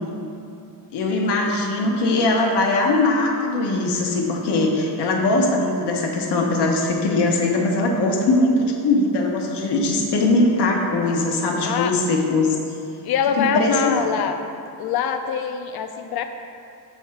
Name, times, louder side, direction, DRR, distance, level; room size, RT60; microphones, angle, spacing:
voice 1, 0.9-12.6 13.4-14.1, left 2 dB, 90° left, 1 dB, 1.0 m, -21 dB
voice 2, 11.6-11.9 13.0-14.4 14.8-16.2, left 7 dB, 65° left, 7 dB, 0.5 m, -24 dB
6.4 x 3.5 x 5.7 m, 2.7 s
cardioid pair, 130°, 39 cm